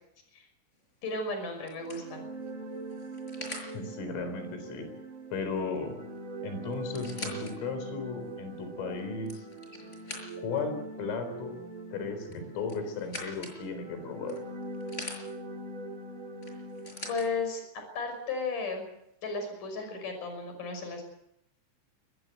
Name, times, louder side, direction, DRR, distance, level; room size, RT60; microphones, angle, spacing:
sound 1, 0.8-1.1 1.7-3.7 5.8-5.9 6.1-6.2 6.7-7.5 8.1-8.2 9.0-10.6 12.3-13.6 14.3-15.2 16.4-17.3 18.2-18.3, left 1 dB, 15° left, 5.8 m, -43 dB
voice 1, 1.0-2.2 17.1-18.9 19.2-21.1, left 3 dB, 40° left, 6 dB, 7.1 m, -34 dB
sound 2, 1.7-17.4, right 2 dB, 35° right, 2.5 m, -42 dB
voice 2, 3.7-4.9 5.3-6.0 6.4-9.5 10.4-11.6 11.9-14.4, left 4 dB, 85° left, 8 dB, 6.6 m, -35 dB
23.5 x 20.5 x 8.0 m, 0.78 s
omnidirectional pair, 5.6 m